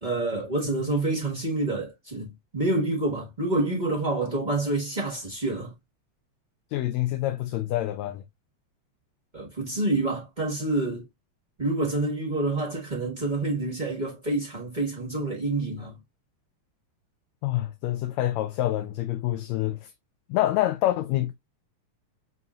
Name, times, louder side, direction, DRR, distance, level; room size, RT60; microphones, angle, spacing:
voice 1, 0.0-5.7 9.3-11.0 11.6-16.0, right 2 dB, 40° right, 0.6 m, -27 dB
voice 2, 6.7-8.2 17.4-19.9 20.3-21.3, left 14 dB, 75° left, 1.8 m, -27 dB
7.2 x 2.8 x 2.4 m
omnidirectional pair, 3.5 m